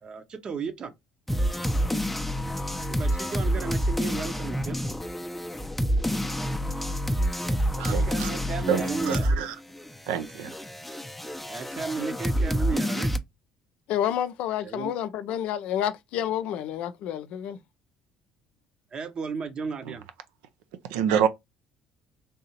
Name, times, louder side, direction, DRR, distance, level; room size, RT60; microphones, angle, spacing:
voice 1, 0.0-0.9 1.7-2.1 2.9-4.8 6.0-6.3 7.4-9.3 11.5-13.1 14.6-14.9 18.9-20.1, right 5 dB, 45° right, 0.8 m, -35 dB
sound 1, 1.3-9.5 9.7-13.2, equal, 5° left, 0.5 m, -28 dB
voice 2, 7.8-8.3 8.7-9.5 10.1-10.5 20.9-21.3, right 8 dB, 70° right, 0.4 m, -27 dB
voice 3, 13.9-17.6, left 10 dB, 65° left, 0.4 m, -29 dB
3.4 x 2.7 x 2.7 m
hypercardioid pair, 55°, 2 cm